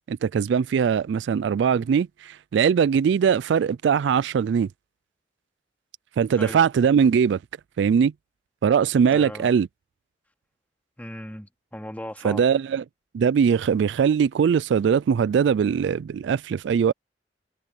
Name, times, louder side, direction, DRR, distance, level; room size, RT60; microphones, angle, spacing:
voice 1, 0.0-4.7 6.2-7.4 7.8-8.1 8.6-9.7 12.2-12.8 13.1-16.9, right 7 dB, 75° right, 0.3 m, -21 dB
voice 2, 9.1-9.5 11.0-12.4, left 1 dB, 10° left, 2.4 m, -37 dB
head